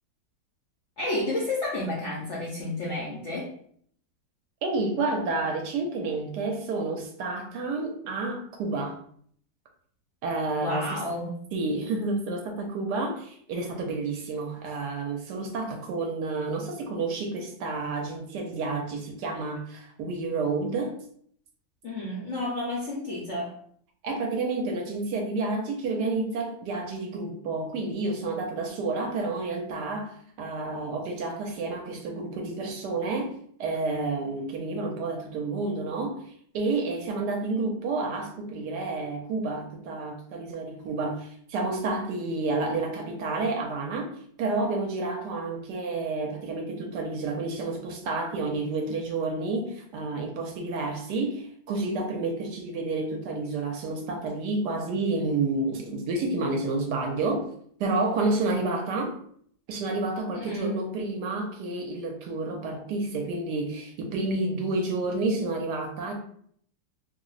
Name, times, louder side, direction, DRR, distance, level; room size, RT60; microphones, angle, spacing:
voice 1, 1.0-3.5 10.6-11.4 21.8-23.6 60.4-60.8, left 2 dB, 65° left, -5 dB, 0.7 m, -31 dB
voice 2, 4.6-9.0 10.2-11.0 11.5-21.0 24.0-57.5 57.8-59.2 59.7-66.1, right 3 dB, 70° right, 2 dB, 1.1 m, -30 dB
3.0 x 2.0 x 3.8 m, 0.62 s
omnidirectional pair, 2.0 m